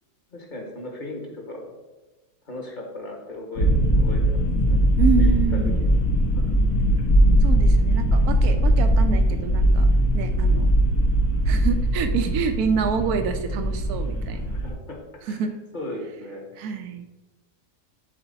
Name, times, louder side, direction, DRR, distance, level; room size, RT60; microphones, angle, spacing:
voice 1, 0.3-1.7 2.5-4.8 5.1-5.3 6.3-6.6 14.5-15.0 15.3-15.4 15.7-16.5, left 1 dB, 30° left, 0 dB, 1.5 m, -37 dB
sound 1, 3.5-14.7, right 1 dB, 70° left, 1.7 m, -20 dB
voice 2, 5.0-5.7 7.4-9.9 10.1-10.7 11.5-14.5 15.3-15.5 16.6-17.1, right 6 dB, 70° right, 7 dB, 1.2 m, -27 dB
9.8 x 4.4 x 4.1 m, 1.1 s
omnidirectional pair, 1.7 m